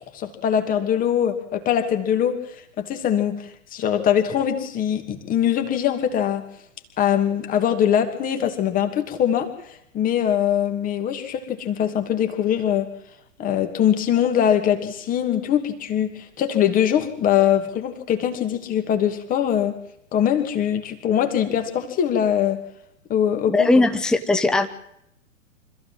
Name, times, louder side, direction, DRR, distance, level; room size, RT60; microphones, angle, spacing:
voice 1, 0.1-2.4 2.8-6.4 7.0-12.9 13.4-19.8 20.1-22.6 23.1-23.7, left 9 dB, 20° left, 6 dB, 2.7 m, -22 dB
voice 2, 23.5-24.7, left 2 dB, ahead, 8 dB, 0.9 m, -19 dB
26.0 x 15.0 x 7.7 m, 0.75 s
figure-of-eight pair, 110°, 39 cm